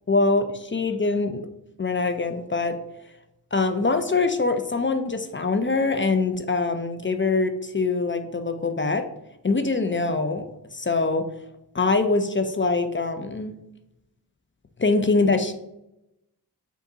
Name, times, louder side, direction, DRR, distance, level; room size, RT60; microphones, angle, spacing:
voice 1, 0.1-1.4 1.8-2.8 3.5-9.0 9.4-10.4 10.7-11.2 11.7-13.5 14.8-15.5, left 3 dB, 30° left, 7 dB, 0.4 m, -23 dB
5.2 x 2.6 x 3.8 m, 0.84 s
wide cardioid pair, 75°, 41 cm